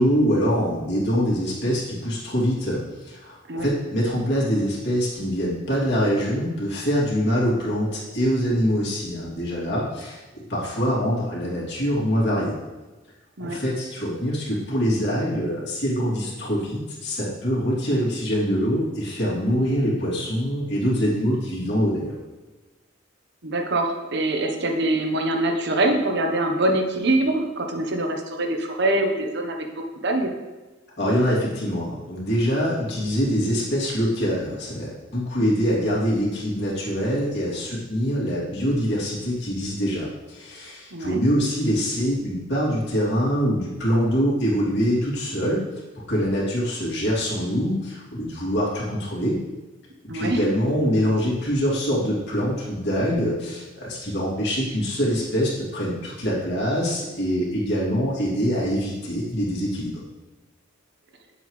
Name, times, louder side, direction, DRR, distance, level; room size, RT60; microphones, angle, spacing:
voice 1, 0.0-12.6 13.4-22.1 31.0-45.6 45.9-49.4 50.1-60.0, equal, 55° left, -5 dB, 2.8 m, -24 dB
voice 2, 23.4-30.3 40.9-41.2 50.1-50.4, right 1 dB, 55° right, 3 dB, 1.0 m, -24 dB
9.2 x 7.8 x 3.2 m, 1.2 s
head